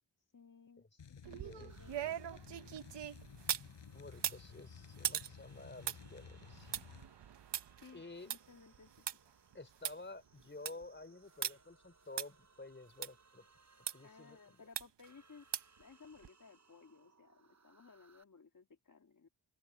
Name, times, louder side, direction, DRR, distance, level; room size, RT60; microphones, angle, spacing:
voice 1, 0.3-2.4 7.8-9.0 14.0-15.5 15.8-19.3, left 5 dB, 45° left, 2.6 m, -59 dB
sound 1, 1.0-7.1, left 7 dB, 85° left, 6.1 m, -55 dB
sound 2, 1.2-3.7 4.1-9.2 9.5-9.6 9.8-9.9 10.4-10.8 11.4-11.5 12.2-12.3 13.0-13.1 13.9-14.0 14.8-15.1 15.5-15.8 16.2-16.3, right 9 dB, 75° right, 0.9 m, -41 dB
sound 3, 1.7-18.2, right 4 dB, 40° right, 3.8 m, -69 dB
voice 2, 3.9-6.7 7.9-8.3 9.5-13.4 13.9-14.6, left 2 dB, 25° left, 4.3 m, -51 dB
open air
wide cardioid pair, 75°, 42 cm